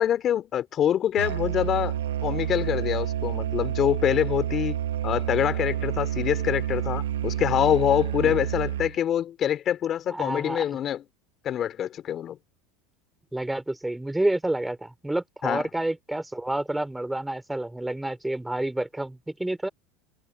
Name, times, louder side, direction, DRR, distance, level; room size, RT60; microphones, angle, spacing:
voice 1, 0.0-1.9 2.2-4.8 5.0-11.0 11.4-12.4 15.4-15.7, left 10 dB, 40° left, 3.2 m, -25 dB
Musical instrument, 1.2-9.0, right 11 dB, 90° right, 1.2 m, -29 dB
voice 2, 10.1-10.6 13.3-19.7, right 1 dB, 5° right, 3.4 m, -29 dB
hypercardioid pair, 90°, 0 cm